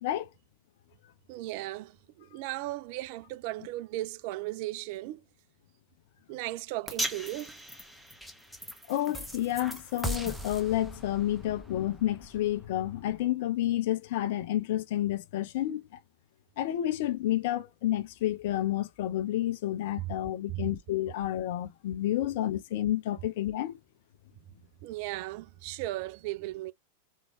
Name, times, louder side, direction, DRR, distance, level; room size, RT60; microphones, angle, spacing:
voice 1, 1.3-5.2 6.3-7.6 20.0-20.1 20.5-20.7 24.8-26.7, right 17 dB, 45° right, 0.3 m, -36 dB
sound 1, 6.9-13.2, equal, ahead, 0.9 m, -39 dB
voice 2, 8.9-15.9 16.6-23.8, left 13 dB, 50° left, 0.7 m, -30 dB
3.7 x 3.1 x 2.9 m
figure-of-eight pair, 90°, 0 cm